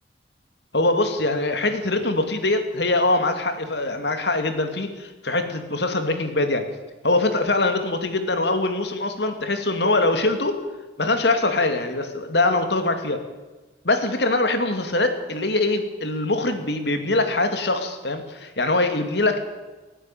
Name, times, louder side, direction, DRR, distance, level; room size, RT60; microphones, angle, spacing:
voice 1, 0.7-6.7 7.0-10.6 11.0-13.2 13.8-19.4, left 2 dB, 70° left, 7 dB, 2.6 m, -23 dB
30.0 x 10.0 x 9.2 m, 1.2 s
head